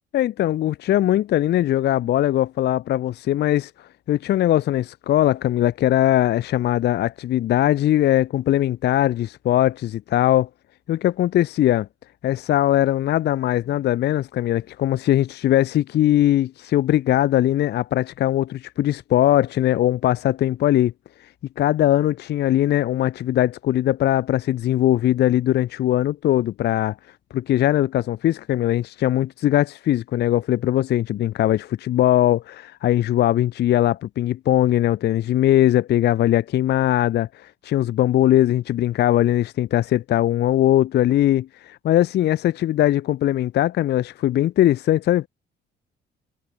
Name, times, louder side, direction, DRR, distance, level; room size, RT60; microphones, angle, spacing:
voice 1, 0.1-3.7 4.1-10.5 10.9-11.9 12.2-20.9 21.6-27.0 27.3-45.3, left 13 dB, 55° left, 0.4 m, -20 dB
cardioid pair, 90°, 20 cm